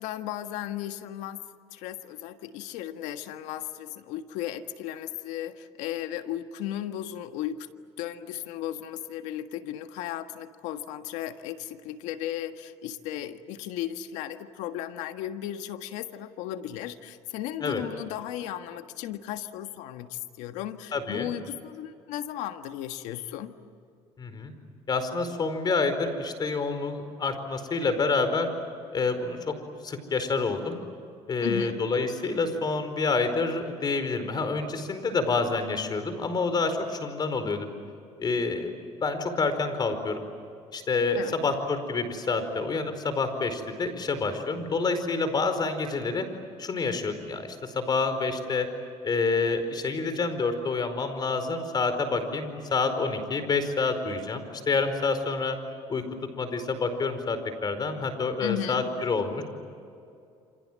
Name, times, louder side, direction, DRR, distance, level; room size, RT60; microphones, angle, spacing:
voice 1, 0.0-1.4 1.7-7.7 8.0-23.5 31.4-31.8 41.1-41.4 58.4-59.0, left 12 dB, 80° left, 8 dB, 1.6 m, -35 dB
voice 2, 20.9-21.3 24.2-24.5 24.9-28.5 28.9-29.5 29.8-30.7 31.3-37.7 38.2-40.2 40.7-46.3 46.6-48.7 49.0-55.6 55.9-56.0 56.4-59.4, left 4 dB, 35° left, 9 dB, 4.8 m, -28 dB
28.5 x 27.0 x 7.6 m, 2.5 s
supercardioid pair, 95°, 12 cm